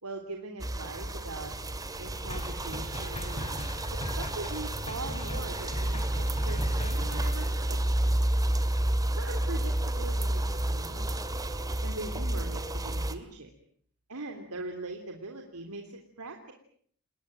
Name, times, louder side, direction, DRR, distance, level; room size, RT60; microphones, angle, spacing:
voice 1, 0.0-1.5 2.0-3.6 3.9-7.8 9.2-11.2 11.8-13.5 14.1-16.5, right 2 dB, 85° right, 4 dB, 3.4 m, -41 dB
sound 1, 0.6-13.1, right 1 dB, 15° right, 2.3 m, -30 dB
sound 2, 2.3-7.5, left 1 dB, 25° left, 4.8 m, -39 dB
30.0 x 19.5 x 9.1 m, 0.62 s
head